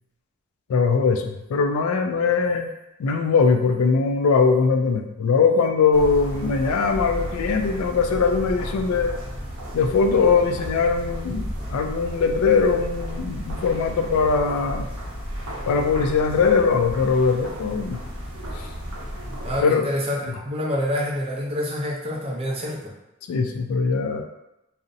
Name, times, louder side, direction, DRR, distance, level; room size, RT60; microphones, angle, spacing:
voice 1, 0.7-2.7 3.0-9.1 9.7-14.8 15.7-18.0 18.6-18.7 19.6-19.9 23.3-24.2, left 5 dB, 75° left, 5 dB, 0.3 m, -21 dB
sound 1, 5.9-19.6, equal, 75° right, 0.6 m, -33 dB
voice 2, 19.4-22.9, left 1 dB, 25° right, -3 dB, 0.5 m, -27 dB
2.5 x 2.0 x 2.5 m, 0.90 s
head